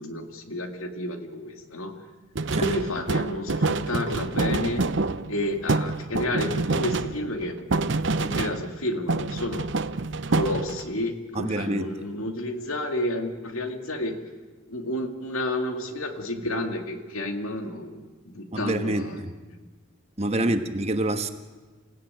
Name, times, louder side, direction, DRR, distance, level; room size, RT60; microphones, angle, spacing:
voice 1, 0.0-1.9 2.6-4.8 5.3-7.6 8.2-9.7 10.3-14.2 14.7-19.6 20.4-20.6, left 1 dB, 85° left, 6 dB, 2.3 m, -31 dB
sound 1, 2.3-8.8 9.1-11.0, right 3 dB, 60° right, 0.8 m, -27 dB
voice 2, 11.3-11.9 18.5-19.3 20.2-21.3, right 1 dB, 30° right, 7 dB, 1.4 m, -27 dB
28.0 x 16.0 x 9.1 m, 1.3 s
head